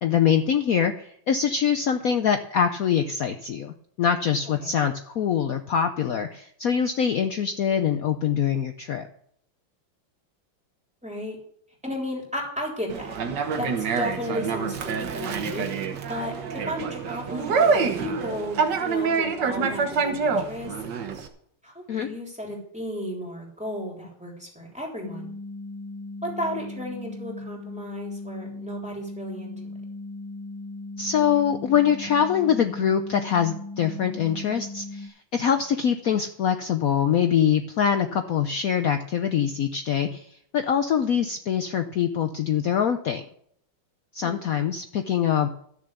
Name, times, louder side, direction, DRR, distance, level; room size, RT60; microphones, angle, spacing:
voice 1, 0.0-9.1 21.9-22.1 31.0-40.3 40.5-43.2 44.1-45.5, left 8 dB, 90° left, 7 dB, 0.7 m, -24 dB
voice 2, 11.0-11.4 11.8-13.2 13.6-15.7 16.1-20.7 21.6-25.3 26.2-29.7 44.2-44.4, equal, 5° right, -2 dB, 3.3 m, -34 dB
Conversation, 12.9-21.3, right 5 dB, 55° right, 1.6 m, -26 dB
sound 1, 25.0-35.1, left 2 dB, 20° left, 2.1 m, -38 dB
13.0 x 7.0 x 6.7 m, 0.67 s
omnidirectional pair, 2.4 m